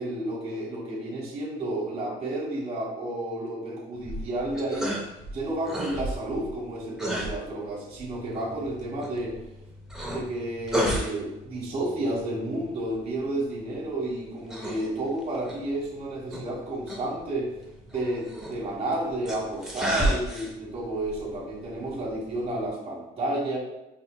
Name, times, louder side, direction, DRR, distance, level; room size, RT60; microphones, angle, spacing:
voice 1, 0.0-5.0 5.3-9.3 10.0-17.5 17.9-23.6, right 1 dB, 35° right, -6 dB, 1.4 m, -31 dB
sound 1, 4.0-22.7, right 1 dB, 5° right, 0.7 m, -35 dB
5.5 x 2.7 x 2.3 m, 0.94 s
cardioid pair, 110°, 17 cm